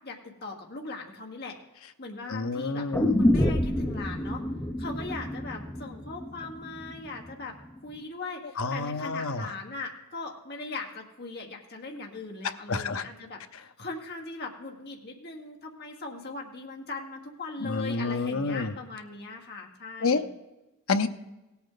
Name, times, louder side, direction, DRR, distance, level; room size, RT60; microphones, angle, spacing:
voice 1, 0.0-1.6 2.0-2.9 3.2-4.4 4.8-7.6 7.8-20.3, left 3 dB, 45° left, 0 dB, 1.5 m, -39 dB
voice 2, 2.3-3.3 8.6-9.5 12.7-13.1 17.6-18.7 20.0-20.2 20.9-21.1, left 4 dB, 70° left, 9 dB, 0.8 m, -28 dB
sound 1, 2.9-7.0 7.3-7.4, left 1 dB, 10° left, 0.7 m, -27 dB
17.0 x 8.6 x 3.9 m, 1.0 s
head